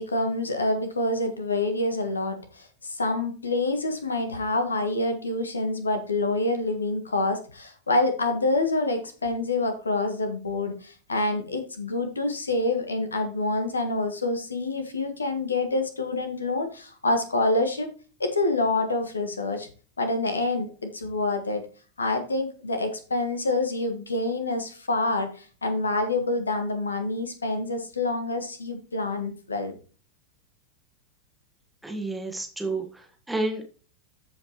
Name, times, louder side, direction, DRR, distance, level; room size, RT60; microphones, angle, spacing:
voice 1, 0.0-17.9 18.2-19.7 20.0-21.6 22.0-29.7, left 2 dB, 75° left, 8 dB, 1.5 m, -27 dB
voice 2, 31.8-33.6, right 2 dB, 5° right, 3 dB, 1.6 m, -30 dB
14.0 x 5.2 x 3.1 m, 0.37 s
figure-of-eight pair, 90°, 0 cm